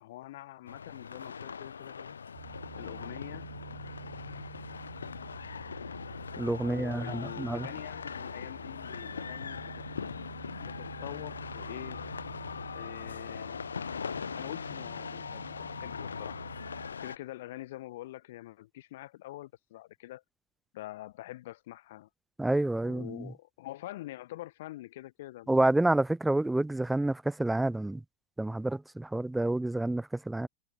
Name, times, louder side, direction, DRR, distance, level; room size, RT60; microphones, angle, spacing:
voice 1, 0.0-2.2 2.8-3.5 6.6-9.7 10.6-12.0 12.7-13.6 14.3-16.4 17.0-20.2 20.7-22.1 22.8-25.5, left 16 dB, 60° left, 0.8 m, -45 dB
sound 1, 0.7-17.2, left 6 dB, 80° left, 0.4 m, -41 dB
sound 2, 2.3-16.9, right 17 dB, 60° right, 0.7 m, -49 dB
voice 2, 6.4-7.7 22.4-23.3 25.5-28.0 28.4-30.5, right 2 dB, 5° right, 0.4 m, -28 dB
figure-of-eight pair, 80°, 0 cm